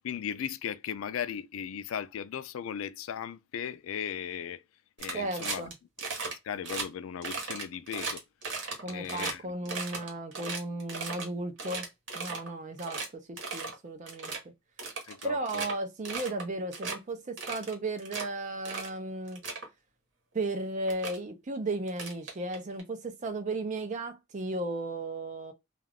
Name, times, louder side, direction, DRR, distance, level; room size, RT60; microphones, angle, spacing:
voice 1, 0.0-4.6 5.0-5.7 6.3-8.2 8.9-9.7 15.1-15.7, left 8 dB, 75° left, 0.3 m, -37 dB
sound 1, 5.0-5.7 6.0-6.3 6.6-6.9 7.2-9.3 9.7-11.3 11.6-12.5 12.8-13.1 13.4-13.7 14.1-14.4 14.8-15.7 16.1-16.4 16.7-17.0 17.4-18.2 18.7-18.9 19.3-19.7 20.5-20.6 20.9-21.2 21.9-22.8, right 4 dB, 60° right, 1.1 m, -36 dB
voice 2, 5.1-5.7 8.8-11.9 12.1-14.3 15.2-19.4 20.3-25.5, right 2 dB, 35° right, 0.4 m, -35 dB
2.3 x 2.3 x 3.3 m
head